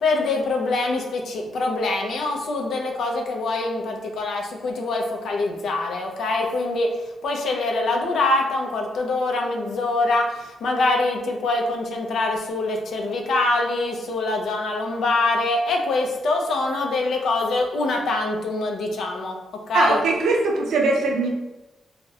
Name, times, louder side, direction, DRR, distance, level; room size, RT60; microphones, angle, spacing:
voice 1, 0.0-20.0, left 2 dB, 70° left, 2 dB, 0.4 m, -24 dB
voice 2, 19.7-21.3, right 3 dB, 90° right, 0 dB, 0.5 m, -21 dB
2.4 x 2.0 x 2.6 m, 1.0 s
cardioid pair, 125°, 0 cm